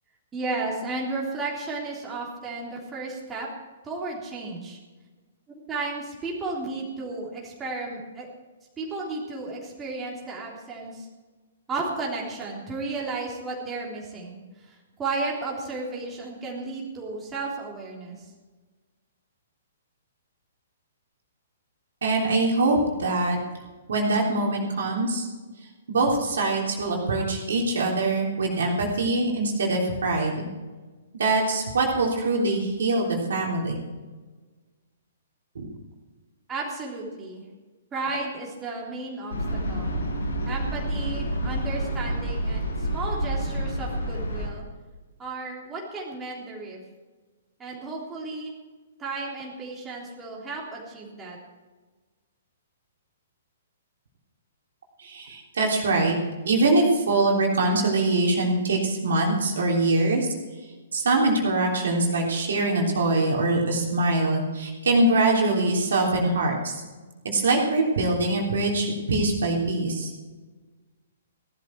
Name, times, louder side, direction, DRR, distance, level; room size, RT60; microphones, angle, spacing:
voice 1, 0.3-3.5 3.8-4.8 5.5-8.3 8.8-11.1 11.7-18.3 36.5-37.4 37.9-40.0 40.4-44.7 45.2-46.8 47.6-48.5 49.0-51.4, right 3 dB, 15° right, -3 dB, 3.4 m, -33 dB
voice 2, 22.0-23.4 23.9-25.3 25.9-30.4 31.2-33.8 35.5-35.7 55.0-56.2 56.4-60.3 60.9-66.7 67.2-70.1, right 2 dB, 60° right, -1 dB, 3.4 m, -23 dB
sound 1, 39.3-44.5, right 1 dB, 70° left, 5.1 m, -28 dB
17.5 x 12.5 x 4.6 m, 1.3 s
figure-of-eight pair, 115°, 0 cm